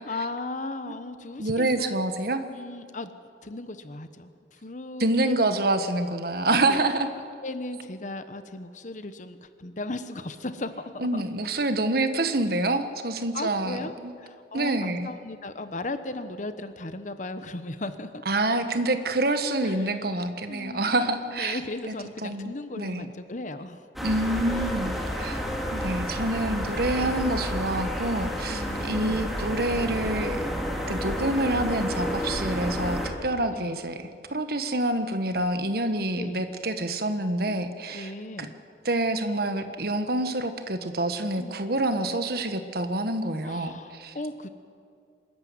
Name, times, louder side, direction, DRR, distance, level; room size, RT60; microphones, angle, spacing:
voice 1, 0.1-2.0 2.5-3.1 3.4-4.3 4.6-5.3 6.7-6.8 7.4-11.2 13.3-18.1 19.6-19.8 20.5-23.9 24.6-24.8 27.0-27.2 28.5-29.3 33.5-33.7 36.2-36.5 37.5-37.6 37.9-38.5 41.4-41.6 43.4-44.5, left 2 dB, 45° left, 10 dB, 1.1 m, -36 dB
voice 2, 1.4-2.4 5.0-7.1 11.0-14.1 14.5-15.1 18.2-21.6 21.9-22.0 22.2-23.1 24.0-25.4 25.7-30.4 30.9-38.1 38.4-38.5 38.8-44.1, right 2 dB, 60° right, 8 dB, 1.5 m, -27 dB
sound 1, 24.0-33.1, equal, ahead, 2.6 m, -30 dB
25.5 x 13.5 x 9.6 m, 2.3 s
head